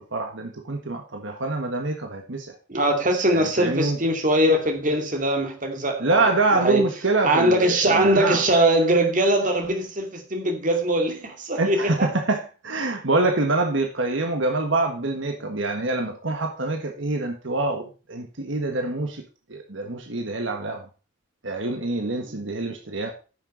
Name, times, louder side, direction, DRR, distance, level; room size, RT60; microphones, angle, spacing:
voice 1, 0.0-2.5 3.3-4.0 6.0-8.4 11.6-19.2 19.5-20.9 21.4-23.1, right 2 dB, 70° right, 1.6 m, -25 dB
voice 2, 2.7-6.8 7.2-12.1 22.3-22.4, right 1 dB, 40° right, 2.3 m, -22 dB
10.0 x 6.6 x 5.4 m
head